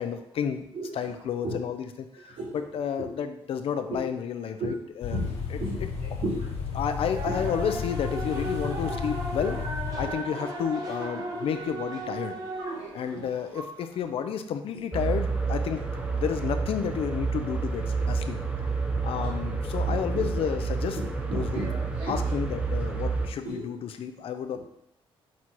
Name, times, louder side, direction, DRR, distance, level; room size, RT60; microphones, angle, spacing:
voice 1, 0.0-2.1 2.5-5.9 6.7-9.6 10.0-12.4 12.9-15.8 16.1-18.4 19.0-21.0 21.3-21.6 22.1-24.6, left 8 dB, 65° left, 8 dB, 0.6 m, -31 dB
sound 1, 5.0-10.1, left 6 dB, 90° left, 1.1 m, -33 dB
voice 2, 6.2-6.7 11.4-11.5 12.6-13.2 13.6-13.7 19.2-19.3 19.9-20.0 21.3-22.2 23.4-23.6, right 2 dB, 80° right, -6 dB, 2.5 m, -34 dB
sound 2, 7.1-13.8, right 2 dB, 40° right, 1.2 m, -36 dB
sound 3, 14.9-23.3, right 4 dB, 10° right, 0.7 m, -29 dB
6.2 x 4.3 x 4.6 m, 0.76 s
cardioid pair, 150°, 10 cm